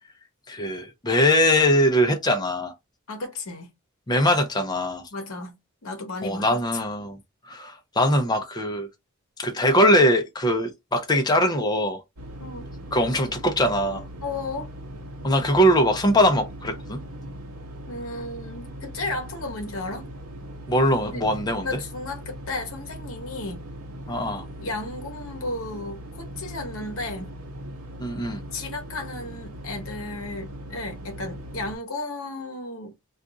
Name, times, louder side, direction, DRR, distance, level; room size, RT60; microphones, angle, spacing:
voice 1, 0.5-2.7 4.1-5.1 6.2-7.2 7.4-8.9 9.4-12.0 12.9-14.0 15.2-17.0 20.7-21.7 24.1-24.5 28.0-28.4, equal, 20° left, 0.5 m, -21 dB
voice 2, 3.1-3.7 5.1-6.4 6.7-6.8 12.4-12.7 14.2-14.7 17.9-20.1 21.1-21.2 21.6-23.7 24.6-27.3 28.5-32.9, left 2 dB, 65° left, 0.9 m, -34 dB
sound 1, 12.2-31.7, equal, 75° right, 0.8 m, -39 dB
2.5 x 2.3 x 3.8 m
head